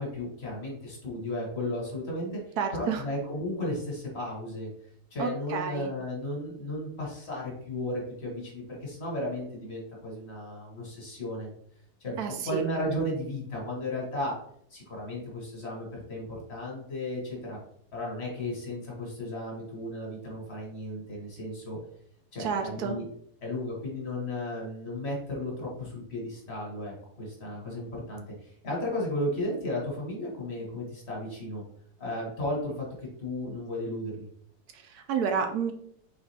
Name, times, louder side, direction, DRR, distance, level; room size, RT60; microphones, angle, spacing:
voice 1, 0.0-2.3 2.7-4.7 5.1-11.5 12.0-14.3 14.7-17.6 17.9-21.8 22.3-23.0 23.4-31.6 32.0-32.9 33.2-34.3, left 1 dB, 45° left, -3 dB, 1.5 m, -34 dB
voice 2, 2.6-3.0 5.2-5.9 12.2-12.6 22.4-23.0 34.7-35.7, right 6 dB, 75° right, 5 dB, 1.1 m, -30 dB
4.0 x 3.4 x 3.4 m, 0.68 s
omnidirectional pair, 1.7 m